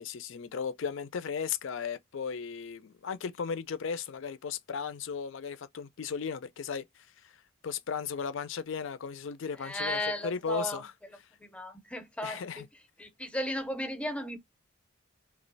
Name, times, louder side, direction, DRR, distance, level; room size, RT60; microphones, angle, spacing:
voice 1, 0.0-7.3 7.6-10.9 12.2-12.6, left 6 dB, 65° left, 0.4 m, -36 dB
voice 2, 9.6-10.8 11.4-12.7 13.0-14.4, left 1 dB, 5° left, 0.6 m, -35 dB
3.1 x 2.4 x 3.9 m
head